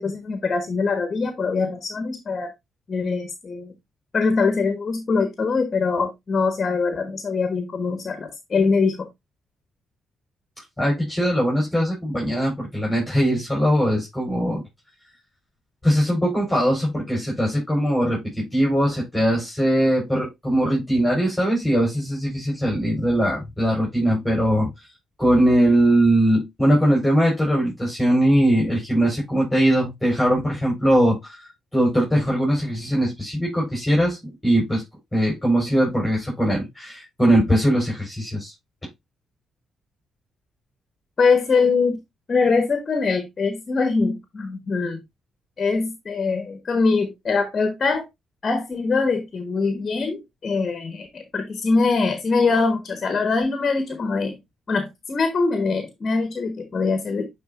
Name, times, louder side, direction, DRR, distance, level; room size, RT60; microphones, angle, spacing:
voice 1, 0.0-2.5 2.9-3.7 4.1-9.1 41.2-42.0 42.3-45.0 45.6-48.0 48.4-54.4 54.7-57.3, left 4 dB, 45° left, 1.3 m, -23 dB
voice 2, 10.8-14.6 15.8-24.7 25.2-31.4 31.7-34.8 35.1-38.5, equal, 10° left, 4.4 m, -21 dB
10.0 x 3.9 x 2.5 m
supercardioid pair, 60°, 0 cm